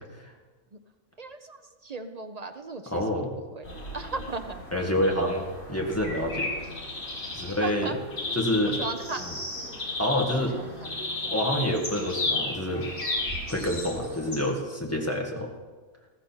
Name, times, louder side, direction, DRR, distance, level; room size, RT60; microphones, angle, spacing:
voice 1, 1.2-4.6 7.4-8.0 8.6-9.3 10.4-10.9, right 3 dB, 45° right, 7 dB, 0.5 m, -37 dB
voice 2, 2.9-3.3 4.7-6.5 7.3-7.9 8.4-8.8 10.0-10.6 11.3-12.9 13.5-15.5, left 1 dB, 10° left, 0 dB, 1.7 m, -27 dB
sound 1, 3.6-14.3, left 2 dB, 65° left, 4.3 m, -34 dB
14.0 x 14.0 x 4.5 m, 1.4 s
omnidirectional pair, 1.6 m